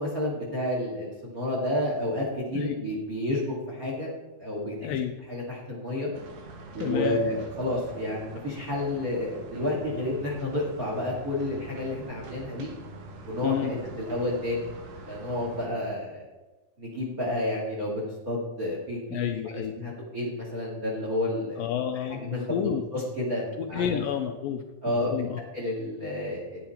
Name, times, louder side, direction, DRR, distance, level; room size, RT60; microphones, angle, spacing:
voice 1, 0.0-4.1 4.4-5.0 5.3-6.1 6.7-12.7 13.3-14.7 15.1-16.2 16.8-21.6 22.1-24.0 24.8-25.1 25.5-26.7, left 1 dB, 30° right, -2 dB, 2.0 m, -30 dB
voice 2, 4.8-5.1 6.8-7.2 13.4-13.7 19.1-19.7 21.6-22.8 23.6-25.4, left 9 dB, 85° left, 5 dB, 2.1 m, -30 dB
sound 1, 6.1-15.7, right 3 dB, 65° right, 1.7 m, -44 dB
10.0 x 9.2 x 4.3 m, 1.2 s
omnidirectional pair, 4.5 m